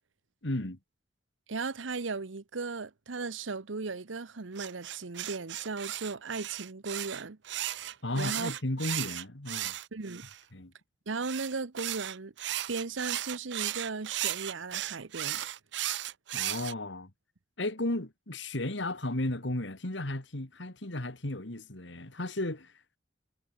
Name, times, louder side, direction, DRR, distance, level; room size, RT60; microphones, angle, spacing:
voice 1, 0.4-0.8 8.0-9.8 10.5-10.7 16.3-17.1 17.6-22.7, left 1 dB, 65° left, 2.5 m, -34 dB
voice 2, 1.5-7.4 8.1-8.5 9.9-10.2 11.1-12.3 12.7-15.4, right 4 dB, 85° right, 0.9 m, -36 dB
sound 1, 4.6-10.4 11.2-16.7, right 13 dB, 65° right, 0.6 m, -36 dB
head